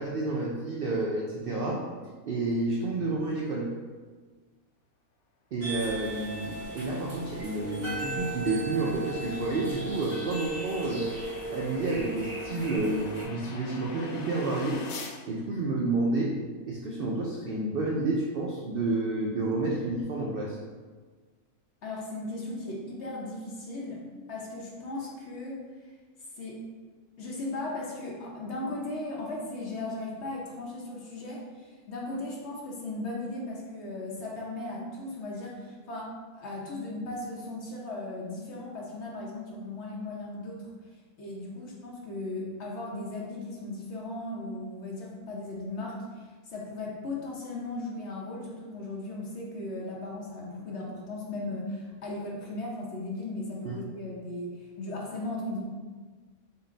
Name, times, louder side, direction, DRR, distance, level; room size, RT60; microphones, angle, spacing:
voice 1, 0.0-1.8 2.3-3.7 5.5-11.1 11.5-14.8 15.3-16.3 16.7-20.6 53.6-53.8, right 2 dB, 85° right, -3 dB, 0.5 m, -30 dB
sound 1, 5.6-13.2, right 2 dB, 60° right, 2.0 m, -37 dB
sound 2, 6.5-15.2, left 4 dB, 85° left, 0.5 m, -47 dB
voice 2, 21.8-24.0 24.3-25.6 26.4-26.6 27.2-36.1 36.4-40.7 41.2-46.2 46.5-55.6, left 2 dB, 55° left, -3 dB, 1.0 m, -37 dB
5.6 x 2.1 x 3.8 m, 1.4 s
omnidirectional pair, 1.6 m